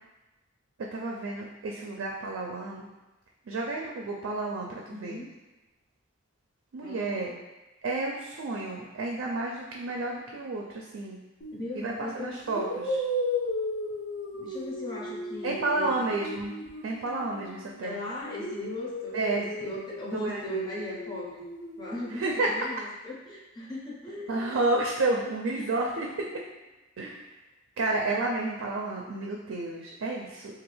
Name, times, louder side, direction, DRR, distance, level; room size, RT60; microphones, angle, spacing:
voice 1, 0.9-2.9 3.5-5.2 6.7-7.3 7.8-11.2 11.7-13.0 15.4-16.5 16.8-18.0 19.1-19.5 20.1-20.6 22.1-22.5 24.3-26.3 27.0-27.2 27.8-30.5, right 2 dB, 75° right, -1 dB, 0.4 m, -31 dB
voice 2, 4.9-5.3 6.8-7.4 11.5-12.4 14.4-16.1 17.8-21.4 21.8-24.6 25.5-25.7, equal, 20° left, -6 dB, 0.5 m, -38 dB
sound 1, 11.4-11.7 12.5-17.8 18.2-22.2, left 1 dB, 65° left, 0.6 m, -35 dB
3.0 x 2.4 x 3.1 m, 1.1 s
head